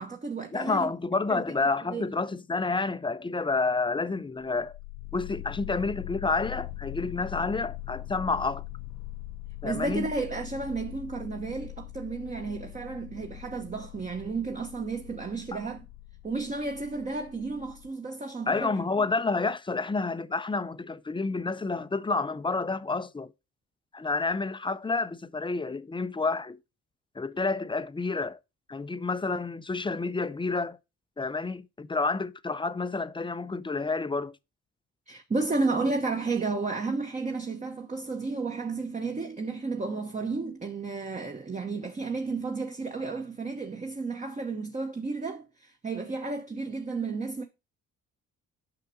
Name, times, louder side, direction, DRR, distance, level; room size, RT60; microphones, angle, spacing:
voice 1, 0.0-0.9 1.3-1.4 1.9-2.1 9.6-15.9 16.2-18.8 35.1-47.5, right 3 dB, 25° right, 1.0 m, -32 dB
voice 2, 0.5-4.7 5.1-8.6 9.6-10.1 15.5-15.6 18.5-23.3 23.9-26.6 27.2-28.4 28.7-30.8 31.2-34.4, left 3 dB, 15° left, 0.5 m, -29 dB
sound 1, 4.5-17.9, left 16 dB, 65° left, 0.7 m, -42 dB
9.4 x 5.8 x 2.7 m
cardioid pair, 90°, 30 cm